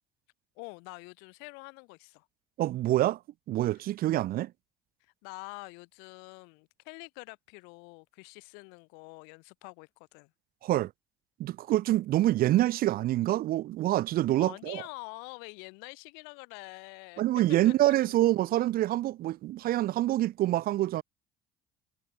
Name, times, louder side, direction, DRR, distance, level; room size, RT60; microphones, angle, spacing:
voice 1, 0.6-2.3 3.7-3.8 5.0-10.3 14.3-17.2 17.6-17.9, left 34 dB, 75° left, 5.4 m, -46 dB
voice 2, 2.6-3.2 3.5-4.5 10.6-10.9 11.4-14.8 17.2-21.0, right 15 dB, 60° right, 1.2 m, -26 dB
hypercardioid pair, 65°, 17 cm